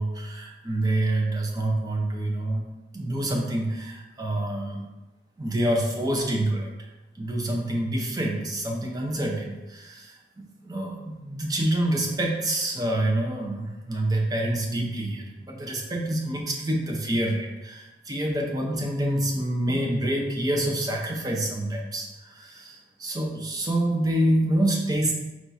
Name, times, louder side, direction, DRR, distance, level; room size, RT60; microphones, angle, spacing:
voice 1, 0.0-2.6 2.9-4.9 5.4-6.7 7.1-25.1, right 1 dB, 20° right, 0 dB, 0.6 m, -27 dB
4.4 x 2.4 x 4.0 m, 1.1 s
head